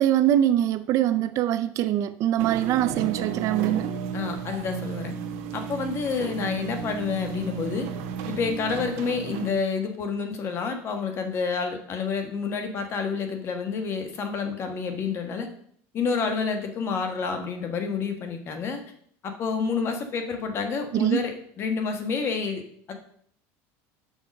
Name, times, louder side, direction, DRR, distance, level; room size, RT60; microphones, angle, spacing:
voice 1, 0.0-3.9 20.9-21.2, right 12 dB, 45° right, 12 dB, 0.4 m, -23 dB
sound 1, 2.4-9.5, right 7 dB, 75° right, 1.1 m, -34 dB
voice 2, 4.1-5.1 5.5-7.9 8.2-15.5 15.9-18.8 19.2-22.6 22.9-23.0, left 5 dB, 35° left, 6 dB, 1.3 m, -29 dB
6.5 x 5.8 x 5.2 m, 0.63 s
cardioid pair, 145°, 7 cm